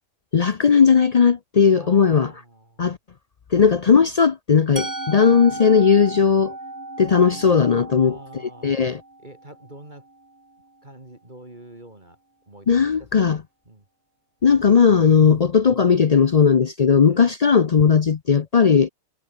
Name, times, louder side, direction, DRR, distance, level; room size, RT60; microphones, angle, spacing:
voice 1, 0.3-2.3 2.8-3.0 3.5-6.5 7.0-8.2 8.6-9.0 12.7-13.4 14.4-18.9, left 6 dB, 55° left, 0.4 m, -17 dB
voice 2, 1.7-2.9 3.5-4.0 8.0-8.9 9.2-10.1 10.8-12.2 12.5-13.3 13.7-13.9 15.2-15.5 17.1-17.3, right 1 dB, 30° right, 3.7 m, -44 dB
Musical instrument, 4.8-10.7, right 2 dB, 15° right, 1.2 m, -36 dB
omnidirectional pair, 1.5 m